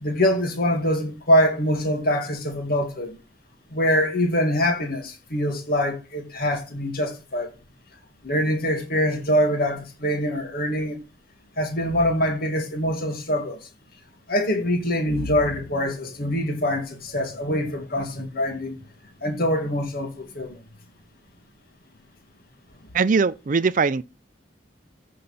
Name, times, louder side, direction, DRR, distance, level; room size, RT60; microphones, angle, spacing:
voice 1, 0.0-3.2 3.7-7.5 8.2-11.0 11.6-13.6 14.3-18.8 19.2-20.6, equal, 50° left, 2.1 m, -24 dB
voice 2, 22.9-24.0, right 5 dB, 45° right, 0.5 m, -21 dB
14.5 x 5.7 x 4.2 m
head